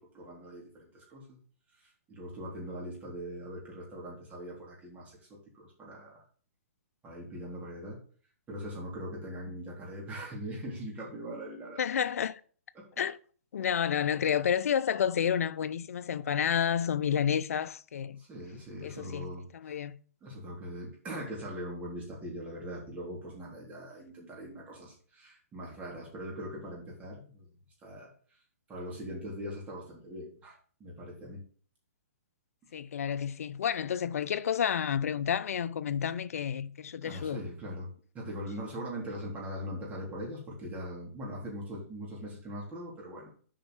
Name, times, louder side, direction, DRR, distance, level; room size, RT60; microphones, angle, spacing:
voice 1, 0.0-1.4 1.8-6.2 7.0-8.0 8.5-12.0 12.7-13.0 18.2-19.8 20.2-27.5 27.8-28.1 28.7-31.4 37.0-37.9 38.1-43.3, equal, 15° right, 3.5 m, -41 dB
voice 2, 11.8-12.4 13.0-13.2 13.5-18.2 18.8-19.9 32.7-37.4, left 8 dB, 65° left, 0.7 m, -30 dB
7.6 x 5.5 x 6.4 m
hypercardioid pair, 145°, 8 cm